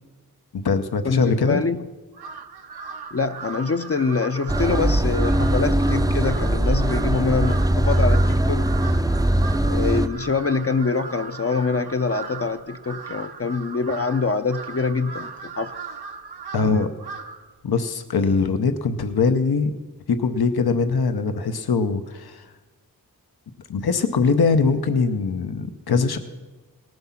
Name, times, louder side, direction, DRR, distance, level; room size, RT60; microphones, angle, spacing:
voice 1, 0.5-1.6 16.5-16.9 17.6-19.7 20.1-22.5 23.7-26.2, left 4 dB, 75° left, 8 dB, 0.8 m, -22 dB
voice 2, 1.0-1.8 3.1-8.7 9.6-15.7, left 4 dB, 40° left, 9 dB, 0.6 m, -25 dB
Crow, 2.1-17.5, right 5 dB, 85° right, 0.9 m, -38 dB
sound 1, 4.5-10.1, right 1 dB, 10° right, 0.5 m, -20 dB
18.5 x 7.8 x 5.8 m, 1.2 s
wide cardioid pair, 50°, 38 cm